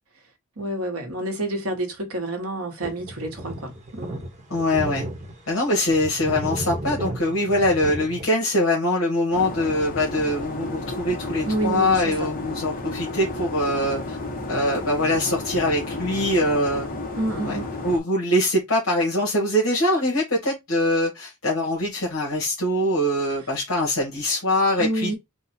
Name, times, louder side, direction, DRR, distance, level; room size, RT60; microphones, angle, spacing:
voice 1, 0.6-4.2 11.4-12.3 17.2-17.8 24.8-25.1, right 1 dB, 90° right, 1.3 m, -28 dB
sound 1, 2.8-5.4 5.9-8.3, right 1 dB, 35° right, 1.1 m, -33 dB
voice 2, 4.5-5.1 5.5-14.2 14.5-16.9 17.4-17.6 17.8-25.2, left 1 dB, 70° left, 1.4 m, -23 dB
sound 2, 9.3-18.0, left 2 dB, 40° left, 1.0 m, -32 dB
3.9 x 2.3 x 4.2 m
head